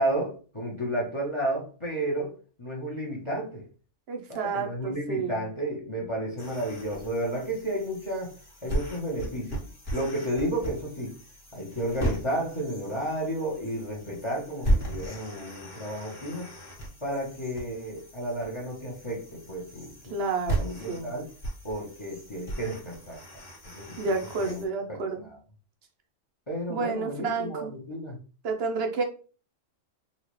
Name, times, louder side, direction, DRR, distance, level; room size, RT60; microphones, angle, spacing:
voice 1, 0.0-2.3 2.6-3.6 4.3-8.3 8.6-9.5 9.9-11.1 11.5-16.5 17.0-20.2 20.6-21.3 21.6-23.2 23.8-24.1 24.4-24.6 24.9-25.4 26.5-28.2, right 1 dB, 25° left, -2 dB, 0.9 m, -32 dB
voice 2, 4.1-5.5 20.1-21.2 24.0-25.3 26.7-27.7 28.4-29.0, right 4 dB, 60° right, 3 dB, 0.9 m, -30 dB
sound 1, 6.4-24.7, right 1 dB, 45° left, 1.5 m, -36 dB
4.0 x 2.4 x 3.1 m, 0.37 s
omnidirectional pair, 1.3 m